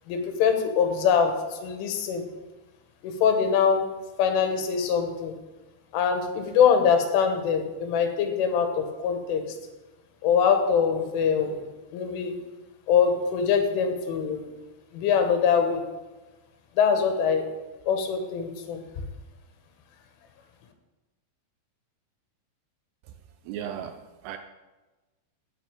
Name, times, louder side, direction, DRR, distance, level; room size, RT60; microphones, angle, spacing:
voice 1, 0.1-2.2 3.0-3.9 4.2-5.3 5.9-9.4 10.2-11.6 11.9-12.3 12.9-14.4 14.9-15.8 16.8-17.5 17.9-18.8, left 7 dB, 85° left, 5 dB, 3.7 m, -23 dB
voice 2, 23.4-24.4, right 9 dB, 85° right, 6 dB, 2.4 m, -36 dB
12.0 x 5.6 x 8.8 m, 1.2 s
omnidirectional pair, 5.6 m